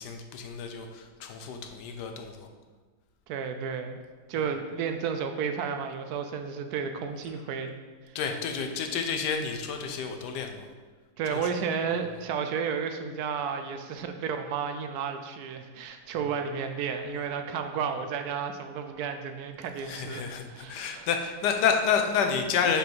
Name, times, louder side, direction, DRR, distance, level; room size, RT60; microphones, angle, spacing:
voice 1, 0.0-2.5 8.1-10.7 11.3-11.5 19.8-22.8, left 6 dB, 80° left, 5 dB, 1.3 m, -29 dB
voice 2, 3.3-4.0 4.3-7.7 11.2-21.1, right 6 dB, 75° right, 6 dB, 1.0 m, -32 dB
5.1 x 5.1 x 4.5 m, 1.4 s
omnidirectional pair, 1.8 m